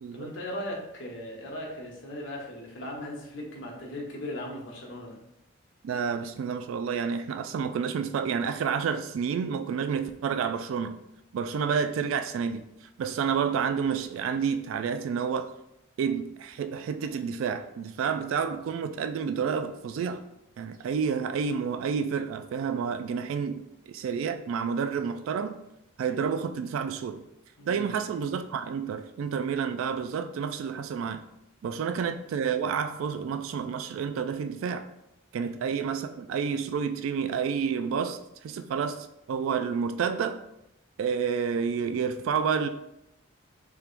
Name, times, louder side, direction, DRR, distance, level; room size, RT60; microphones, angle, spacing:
voice 1, 0.1-5.2 27.6-28.0 31.7-31.8 35.4-35.6, left 1 dB, 65° left, 1.1 m, -38 dB
voice 2, 5.8-11.0 11.3-15.5 16.0-20.2 20.6-25.6 26.0-27.2 27.7-31.2 31.6-34.9 35.3-40.4 41.0-42.7, right 6 dB, 85° right, 0.3 m, -29 dB
4.4 x 3.5 x 2.4 m
head